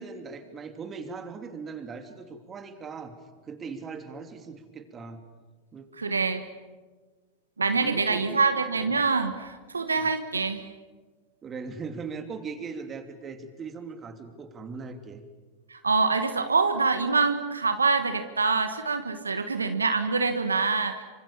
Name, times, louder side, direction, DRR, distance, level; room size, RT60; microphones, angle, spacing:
voice 1, 0.0-3.1 3.4-5.2 5.7-5.9 7.7-8.4 8.8-9.0 9.9-10.1 11.4-15.2, right 5 dB, 25° right, 7 dB, 3.0 m, -39 dB
voice 2, 6.0-6.4 7.6-10.6 15.7-21.0, right 4 dB, 85° right, 8 dB, 1.5 m, -25 dB
27.0 x 25.5 x 7.3 m, 1.3 s
figure-of-eight pair, 90°, 0 cm